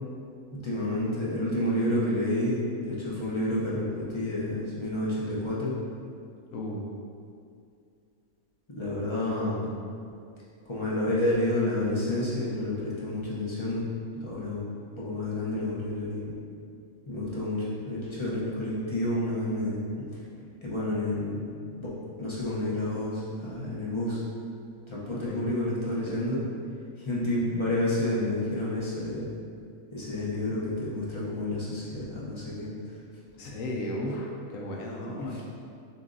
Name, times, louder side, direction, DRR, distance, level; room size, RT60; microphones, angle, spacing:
voice 1, 0.5-5.8 8.8-9.7 10.7-13.8 14.2-14.7 15.0-16.3 17.1-19.8 20.6-21.4 21.8-21.9 22.2-24.2 24.9-26.4 27.0-29.3 29.9-32.6 35.2-35.4, left 1 dB, 25° left, -8 dB, 0.6 m, -29 dB
voice 2, 6.5-7.0 25.1-25.5 26.1-26.2 33.4-35.5, left 1 dB, 70° left, -1 dB, 0.9 m, -35 dB
6.8 x 2.5 x 2.6 m, 2.4 s
omnidirectional pair, 1.5 m